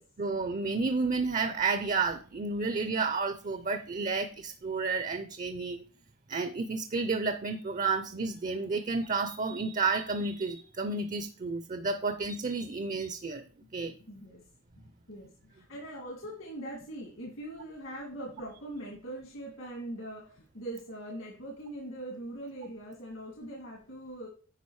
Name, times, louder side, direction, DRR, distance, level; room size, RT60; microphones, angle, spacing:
voice 1, 0.2-5.8 6.3-13.4 13.7-14.0, right 4 dB, 40° right, 10 dB, 0.6 m, -31 dB
voice 2, 14.0-14.4 14.8-24.3, right 1 dB, 70° left, 0 dB, 2.0 m, -42 dB
9.7 x 5.0 x 4.7 m, 0.39 s
head